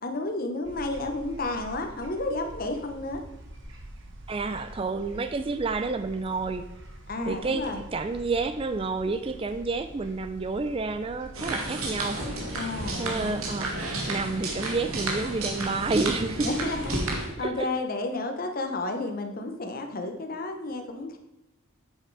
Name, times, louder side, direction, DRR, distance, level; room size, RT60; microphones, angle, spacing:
voice 1, 0.0-3.2 7.1-7.8 12.5-13.4 16.4-17.0 17.4-21.2, left 2 dB, 45° left, 4 dB, 1.0 m, -31 dB
sound 1, 0.6-17.1, right 1 dB, 60° right, 1.3 m, -46 dB
voice 2, 4.3-6.7 7.3-12.2 13.0-13.7 14.1-16.5 17.4-17.7, right 3 dB, 25° right, 10 dB, 0.3 m, -29 dB
sound 2, 11.3-17.3, right 2 dB, 80° right, 1.8 m, -32 dB
8.5 x 6.7 x 4.7 m, 0.91 s
head